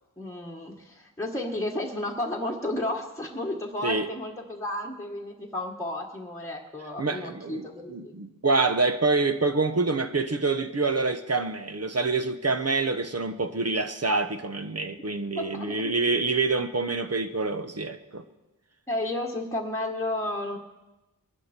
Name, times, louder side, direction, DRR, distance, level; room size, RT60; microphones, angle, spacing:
voice 1, 0.2-8.1 15.3-15.9 18.9-20.6, left 1 dB, 10° left, 1.6 m, -32 dB
voice 2, 7.0-18.2, right 3 dB, 45° right, 1.1 m, -26 dB
21.0 x 11.0 x 4.4 m
wide cardioid pair, 50°, 36 cm